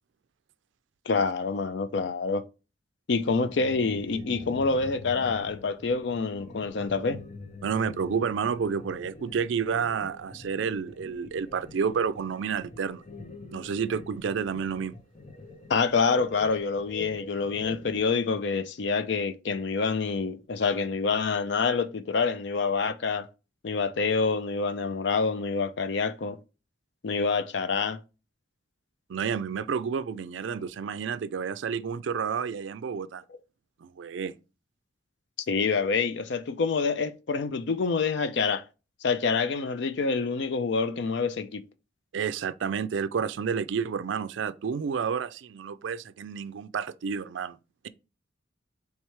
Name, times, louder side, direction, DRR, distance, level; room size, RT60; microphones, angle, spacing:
voice 1, 1.1-2.4 3.1-7.2 15.7-23.3 23.6-26.4 27.0-28.0 35.5-38.6 39.0-41.6, left 4 dB, 65° left, 0.5 m, -27 dB
sound 1, 3.2-18.0, left 2 dB, 40° left, 0.8 m, -45 dB
voice 2, 7.6-13.0 13.5-14.9 29.1-33.2 33.8-34.3 42.1-47.6, right 6 dB, 80° right, 0.4 m, -30 dB
4.7 x 3.2 x 3.2 m
head